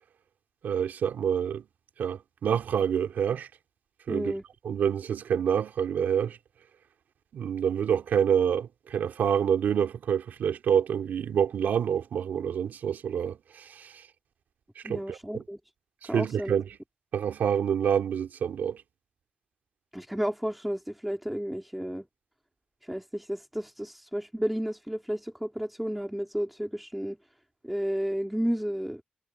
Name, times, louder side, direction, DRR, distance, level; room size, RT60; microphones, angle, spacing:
voice 1, 0.6-1.6 2.0-3.5 4.1-4.3 4.6-6.4 7.3-14.0 14.7-15.4 16.0-16.6 17.1-18.8, right 8 dB, 80° right, 3.4 m, -27 dB
voice 2, 4.1-4.4 14.8-15.6 16.1-16.6 19.9-22.1 22.8-27.2 27.6-29.0, equal, 5° right, 2.4 m, -32 dB
wide cardioid pair, 140°, 3 cm